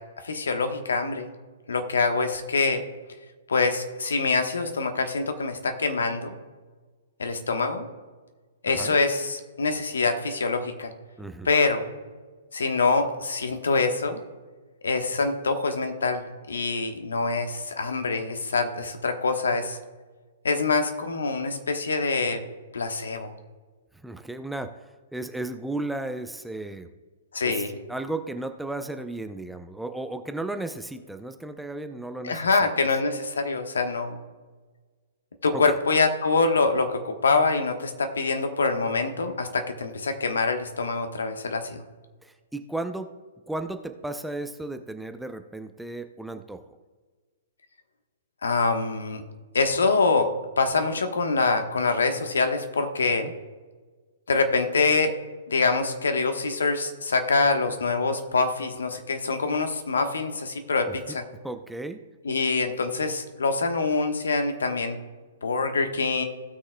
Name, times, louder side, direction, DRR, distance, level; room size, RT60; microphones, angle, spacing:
voice 1, 0.2-1.3 1.7-2.8 3.5-6.3 7.2-7.9 8.6-10.9 11.4-11.8 12.5-14.2 14.8-19.8 20.4-22.4 22.7-23.3 27.3-27.7 32.2-34.2 35.4-41.8 48.4-49.2 49.5-50.3 50.6-53.3 54.3-55.1 55.5-61.2 62.2-65.0 65.4-66.2, left 4 dB, 75° left, 6 dB, 1.1 m, -25 dB
voice 2, 11.2-11.5 24.0-24.7 25.1-26.9 27.4-32.7 35.5-35.8 42.2-43.1 43.5-46.6 53.2-53.3 60.9-61.2 61.4-62.0, right 2 dB, 5° right, 8 dB, 0.5 m, -34 dB
17.0 x 6.4 x 2.2 m, 1.4 s
figure-of-eight pair, 115°, 0 cm